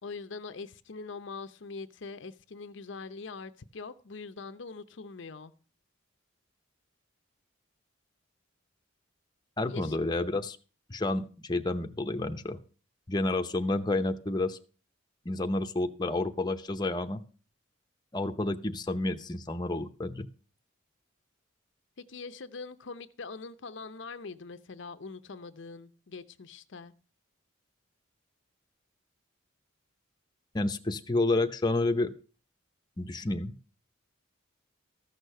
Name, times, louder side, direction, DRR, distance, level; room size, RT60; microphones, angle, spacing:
voice 1, 0.0-5.5 9.7-10.0 22.0-26.9, left 4 dB, 60° left, 0.6 m, -43 dB
voice 2, 9.6-10.6 10.9-12.6 13.1-14.6 15.2-17.2 18.1-20.3 30.5-32.1 33.0-33.5, left 2 dB, 20° left, 0.7 m, -30 dB
14.0 x 6.4 x 6.6 m
head